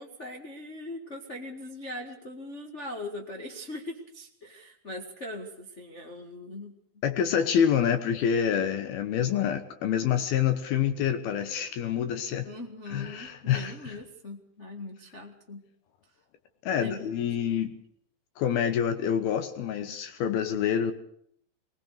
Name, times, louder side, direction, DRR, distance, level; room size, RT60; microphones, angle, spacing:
voice 1, 0.0-6.7 12.4-15.6 16.7-17.1, left 1 dB, 45° left, 0.9 m, -40 dB
voice 2, 7.0-12.5 12.9-14.0 16.6-17.7 18.4-20.9, left 8 dB, 70° left, 3.0 m, -27 dB
21.0 x 20.5 x 6.6 m
omnidirectional pair, 4.7 m